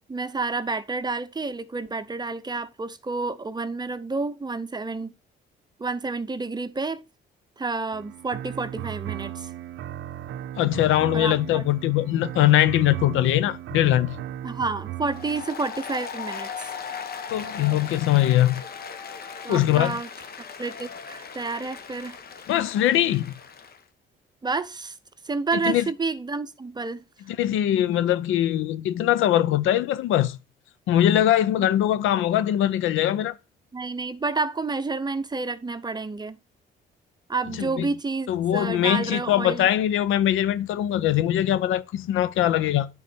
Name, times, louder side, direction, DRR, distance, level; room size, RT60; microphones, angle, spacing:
voice 1, 0.1-5.1 5.8-7.0 7.6-9.5 11.1-11.6 14.4-16.7 19.4-20.1 20.6-22.2 24.4-25.0 25.2-27.0 33.7-36.4 37.3-39.7, right 3 dB, 20° right, 0.7 m, -29 dB
sound 1, 7.9-15.5, right 12 dB, 75° right, 0.6 m, -36 dB
voice 2, 10.6-14.2 17.3-18.6 19.5-20.0 22.5-23.3 25.6-25.9 27.3-30.4 30.9-33.4 37.6-37.9 38.3-42.9, left 12 dB, 85° left, 0.6 m, -22 dB
Applause, 15.1-23.8, left 6 dB, 50° left, 1.0 m, -38 dB
9.4 x 3.9 x 4.3 m
cardioid pair, 90°, 20 cm